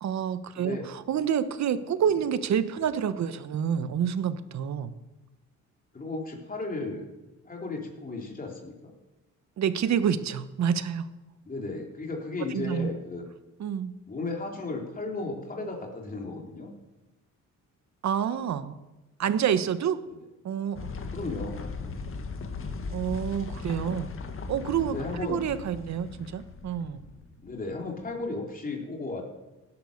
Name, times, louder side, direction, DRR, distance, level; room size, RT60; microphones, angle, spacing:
voice 1, 0.0-4.9 9.6-11.1 12.5-12.9 13.6-13.9 18.0-18.8 19.2-20.0 20.4-20.9 22.9-24.1 24.5-25.0 25.3-27.0, right 8 dB, 65° right, 12 dB, 1.3 m, -28 dB
voice 2, 0.6-0.9 5.9-7.1 7.4-8.9 11.5-13.2 14.1-16.7 21.1-21.7 24.9-25.4 27.4-29.2, left 3 dB, 30° left, 0 dB, 3.6 m, -35 dB
sound 1, 20.7-28.1, left 4 dB, 45° left, 1.8 m, -38 dB
16.0 x 10.5 x 6.6 m, 1.1 s
cardioid pair, 90°, 30 cm